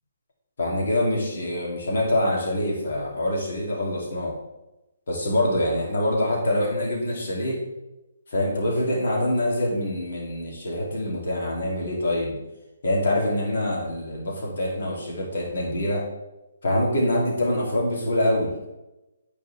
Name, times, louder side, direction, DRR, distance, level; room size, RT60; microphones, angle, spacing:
voice 1, 0.6-4.3 5.1-7.6 8.3-12.4 12.8-16.0 16.6-18.7, left 1 dB, 60° left, -3 dB, 2.6 m, -25 dB
9.3 x 4.8 x 3.3 m, 0.98 s
figure-of-eight pair, 135°, 0 cm